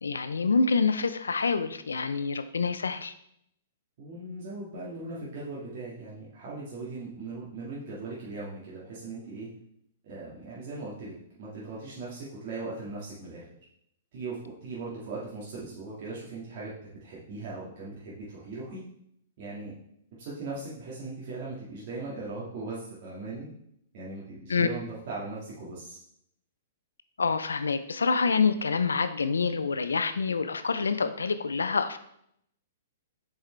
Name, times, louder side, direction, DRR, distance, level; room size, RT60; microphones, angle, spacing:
voice 1, 0.0-3.1 24.5-24.7 27.2-32.0, left 4 dB, 90° left, 11 dB, 0.5 m, -27 dB
voice 2, 4.0-9.5 10.0-13.4 14.1-18.9 19.4-19.7 20.2-23.5 23.9-26.0, right 3 dB, 55° right, -7 dB, 2.0 m, -39 dB
6.6 x 4.7 x 3.3 m, 0.73 s
hypercardioid pair, 125°, 0 cm